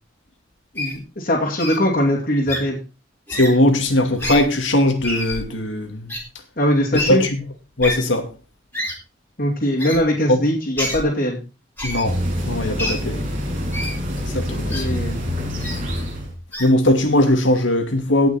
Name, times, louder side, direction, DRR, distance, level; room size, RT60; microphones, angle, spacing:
voice 1, 0.7-2.8 6.6-7.2 9.4-11.4 14.5-15.2, equal, 45° left, 2.8 m, -21 dB
Wild animals, 0.8-1.0 1.6-1.8 2.5-2.6 3.3-3.5 4.2-4.4 5.0-5.4 6.1-6.2 6.9-7.1 7.8-7.9 8.7-8.9 9.8-10.0 10.8-11.0 11.8-12.0 12.8-12.9 13.7-13.9 14.7-14.8 15.6-15.7 16.5-16.7, left 1 dB, 10° left, 3.4 m, -27 dB
voice 2, 3.3-6.2 7.1-7.4 7.8-8.3 10.3-10.4 11.8-12.2 12.4-13.3 14.3-14.8 16.6-18.3, left 1 dB, 70° left, 2.4 m, -19 dB
sound 1, 12.0-16.4, equal, 40° right, 6.9 m, -26 dB
17.5 x 6.0 x 4.3 m
head